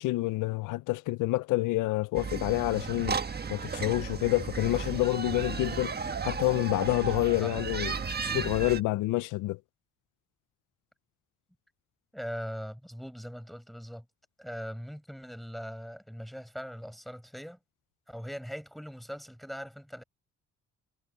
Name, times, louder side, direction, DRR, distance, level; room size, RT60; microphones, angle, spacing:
voice 1, 0.0-3.2 3.5-5.9 6.2-9.6, left 19 dB, 90° left, 0.5 m, -28 dB
sound 1, 2.2-8.8, right 5 dB, 30° right, 1.4 m, -34 dB
voice 2, 12.1-14.0 14.4-17.6 18.1-20.0, equal, ahead, 7.7 m, -40 dB
cardioid pair, 90°, 30 cm